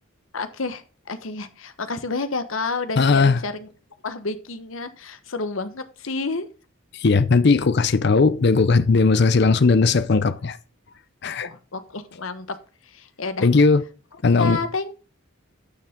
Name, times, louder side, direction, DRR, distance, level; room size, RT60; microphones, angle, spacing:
voice 1, 0.3-3.7 4.0-6.5 11.4-12.6 12.8-13.5 14.4-14.9, left 3 dB, 80° left, 1.2 m, -30 dB
voice 2, 3.0-3.4 6.9-10.6 11.2-11.5 13.4-13.8 14.2-14.6, left 4 dB, 55° left, 0.5 m, -18 dB
12.0 x 7.1 x 3.7 m
head